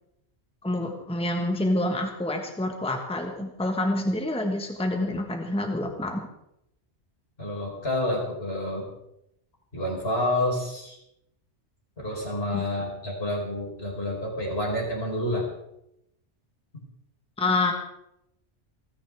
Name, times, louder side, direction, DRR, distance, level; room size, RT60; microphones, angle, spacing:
voice 1, 0.6-6.2 12.5-12.6 17.4-17.7, left 2 dB, 5° left, 3 dB, 1.4 m, -27 dB
voice 2, 7.4-8.9 9.7-11.0 12.0-15.5, left 1 dB, 60° left, -2 dB, 4.8 m, -29 dB
28.5 x 10.0 x 3.6 m, 0.81 s
omnidirectional pair, 1.2 m